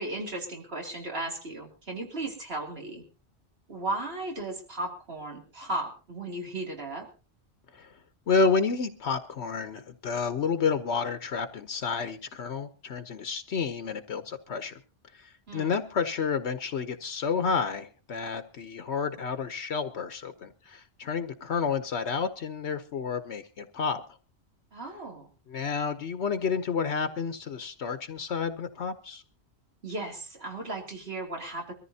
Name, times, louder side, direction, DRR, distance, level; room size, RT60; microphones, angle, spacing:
voice 1, 0.0-3.0 3.7-7.1 15.5-15.8 24.7-25.3 29.8-31.7, right 2 dB, 60° right, 1 dB, 3.0 m, -35 dB
voice 2, 8.3-14.7 15.1-24.0 25.5-29.2, left 5 dB, 75° left, 9 dB, 1.1 m, -30 dB
23.5 x 14.0 x 2.8 m, 0.34 s
omnidirectional pair, 1.1 m